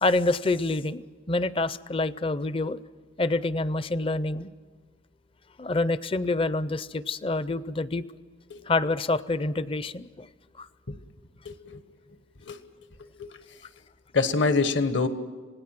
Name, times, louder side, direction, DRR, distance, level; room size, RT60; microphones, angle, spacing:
voice 1, 0.0-2.8 3.2-4.5 5.6-8.0 8.7-10.3 10.6-10.7, left 2 dB, 25° left, 16 dB, 0.5 m, -27 dB
voice 2, 11.4-11.8 12.5-12.6 13.0-13.3 14.1-15.1, left 4 dB, 65° left, 10 dB, 1.3 m, -25 dB
26.5 x 18.0 x 6.0 m, 1.5 s
head